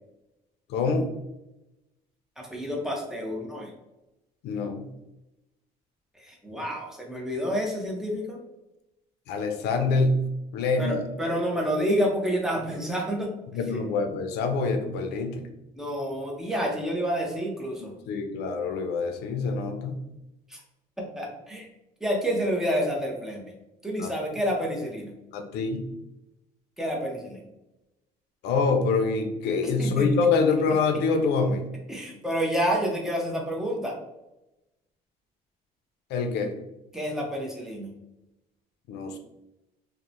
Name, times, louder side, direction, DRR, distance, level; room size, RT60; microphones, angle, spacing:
voice 1, 0.7-1.1 4.4-4.9 9.3-10.2 10.5-11.0 13.5-15.5 18.1-20.0 24.0-24.1 25.3-25.9 28.4-31.6 36.1-36.5 38.9-39.2, left 4 dB, 80° left, 6 dB, 0.4 m, -25 dB
voice 2, 2.4-3.7 6.2-8.4 10.8-13.3 13.7-13.8 15.8-17.9 20.5-20.6 21.0-21.7 22.0-23.5 23.8-25.1 26.8-27.4 29.8-30.1 31.9-34.0 36.9-37.9, equal, 5° right, -1 dB, 0.6 m, -29 dB
2.9 x 2.0 x 2.5 m, 0.95 s
cardioid pair, 110°, 17 cm